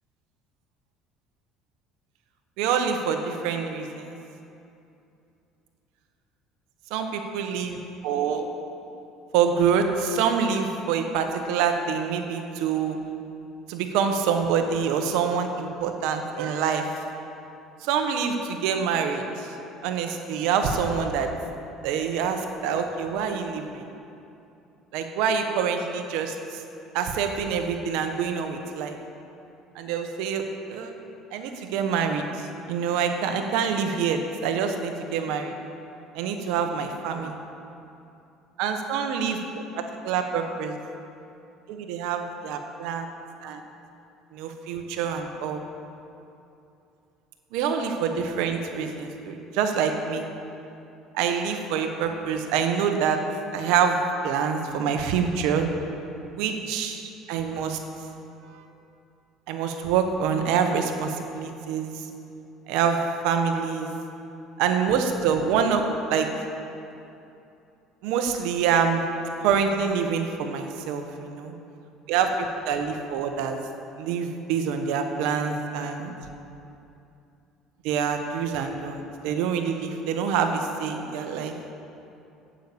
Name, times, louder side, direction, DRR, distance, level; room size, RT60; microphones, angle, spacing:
voice 1, 2.6-4.1 6.9-7.8 8.0-8.5 9.3-13.0 13.7-16.9 17.8-19.5 19.8-21.3 21.8-23.8 24.9-26.6 26.9-29.0 29.7-30.4 30.7-30.9 31.3-35.6 36.1-37.3 38.6-40.7 41.7-43.1 43.4-43.6 44.3-45.6 47.5-50.3 51.1-53.2 53.5-54.0 54.2-55.7 56.3-57.8 58.5-58.6 59.5-62.0 62.7-63.9 64.6-65.8 66.1-66.3 68.0-69.0 69.4-71.5 72.1-73.6 74.0-76.1 77.8-81.5, right 6 dB, 80° right, 5 dB, 1.1 m, -26 dB
9.3 x 8.4 x 8.5 m, 2.7 s
cardioid pair, 110°, 0 cm